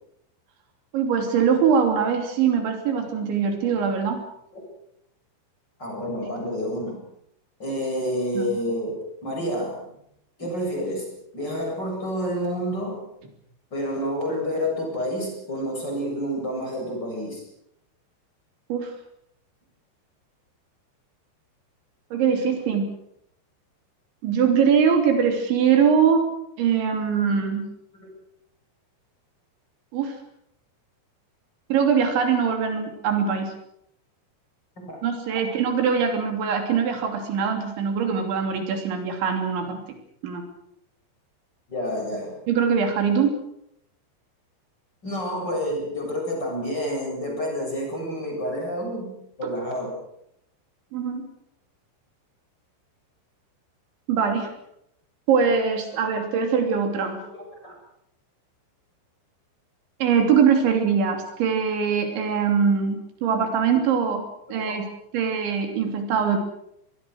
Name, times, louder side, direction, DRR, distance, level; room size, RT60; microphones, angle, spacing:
voice 1, 0.9-4.2 8.4-8.6 18.7-18.9 22.1-22.9 24.2-26.3 26.6-27.7 29.9-30.2 31.7-33.5 35.0-39.8 40.2-40.5 42.5-43.4 50.9-51.3 54.1-54.5 55.3-57.2 60.0-64.2 64.5-64.9 65.1-66.4, right 6 dB, 70° right, 4 dB, 5.2 m, -22 dB
voice 2, 5.8-7.0 7.6-8.9 9.2-9.9 10.4-11.1 11.3-13.0 13.7-17.4 27.9-28.1 34.8-35.0 41.7-42.3 45.0-50.0 57.3-57.7 64.5-64.8, equal, 20° left, 1 dB, 7.8 m, -29 dB
25.5 x 21.5 x 6.4 m, 0.75 s
omnidirectional pair, 5.5 m